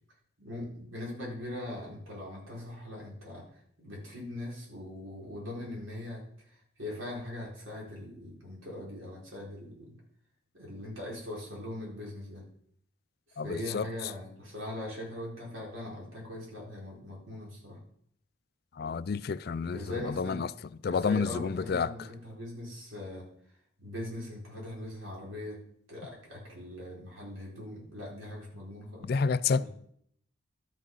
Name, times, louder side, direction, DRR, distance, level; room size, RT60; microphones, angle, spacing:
voice 1, 0.4-3.4 3.8-9.9 10.5-12.4 13.3-17.8 19.7-20.4 20.8-23.3 23.8-25.6 25.9-29.1 29.5-29.7, left 1 dB, 80° right, 4.3 m, -41 dB
voice 2, 13.4-14.1 18.7-20.5 20.8-22.1 29.0-29.7, left 5 dB, 50° left, 0.3 m, -30 dB
12.0 x 6.3 x 5.5 m
head